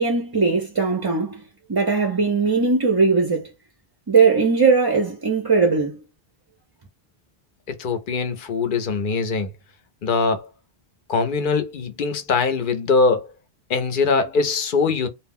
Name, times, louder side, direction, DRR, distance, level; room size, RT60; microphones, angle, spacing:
voice 1, 0.0-1.4 1.7-3.5 4.1-6.0, right 4 dB, 30° right, 0.4 m, -19 dB
voice 2, 7.7-9.5 10.0-10.5 11.1-13.3 13.7-15.1, left 4 dB, 60° left, 0.7 m, -22 dB
2.3 x 2.1 x 3.5 m
omnidirectional pair, 1.0 m